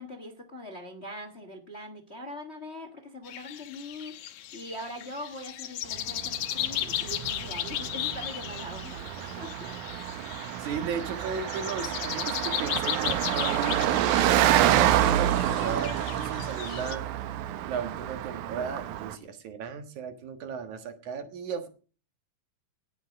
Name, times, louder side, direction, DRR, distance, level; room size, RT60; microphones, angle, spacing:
voice 1, 0.0-9.8, left 1 dB, 30° left, 6 dB, 1.2 m, -42 dB
sound 1, 3.3-17.0, left 12 dB, 85° left, 2.4 m, -36 dB
Car passing by, 5.9-19.2, right 12 dB, 90° right, 2.3 m, -28 dB
voice 2, 10.6-17.0 17.6-21.7, right 6 dB, 75° right, 8 dB, 3.0 m, -35 dB
18.0 x 7.2 x 5.2 m, 0.37 s
omnidirectional pair, 3.4 m